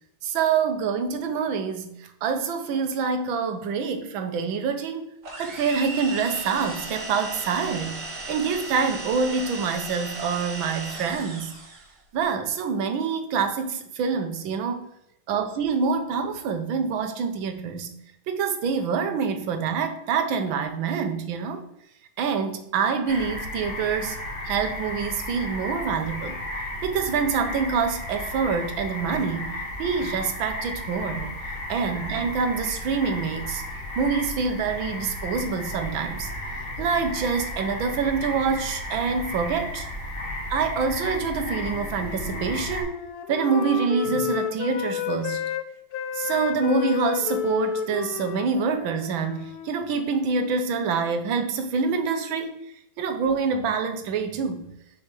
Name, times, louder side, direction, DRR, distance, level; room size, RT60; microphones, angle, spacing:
voice 1, 0.2-5.1 5.4-11.5 12.1-14.9 15.3-17.9 18.3-21.6 22.2-24.2 24.4-26.4 26.8-31.3 31.7-33.6 34.0-39.9 40.5-43.0 43.3-45.4 46.1-54.7, right 5 dB, 85° right, 7 dB, 1.6 m, -26 dB
sound 1, 5.2-11.9, right 2 dB, 60° right, 2.1 m, -36 dB
sound 2, 23.1-42.8, left 1 dB, 30° left, 1.8 m, -34 dB
Wind instrument woodwind instrument, 40.7-45.6 45.9-51.2, left 9 dB, 75° left, 0.8 m, -32 dB
6.7 x 5.5 x 3.2 m, 0.81 s
omnidirectional pair, 2.1 m